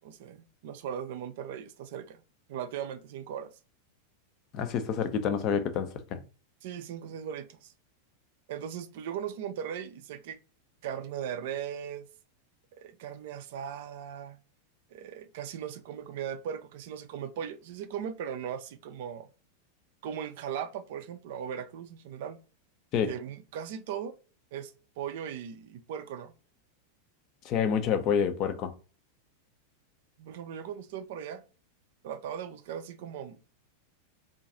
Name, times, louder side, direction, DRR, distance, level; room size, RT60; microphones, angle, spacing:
voice 1, 0.0-0.4 0.6-2.2 2.5-3.5 5.2-5.3 6.6-7.7 8.5-10.4 10.8-12.1 12.7-14.4 14.9-19.3 20.0-22.4 23.1-24.1 24.5-26.3 30.2-31.4 32.0-33.4, right 8 dB, 50° right, 0.4 m, -38 dB
voice 2, 4.5-6.2 22.9-23.1 27.4-28.7, left 7 dB, 35° left, 0.5 m, -28 dB
2.5 x 2.3 x 3.7 m
figure-of-eight pair, 90°, 0 cm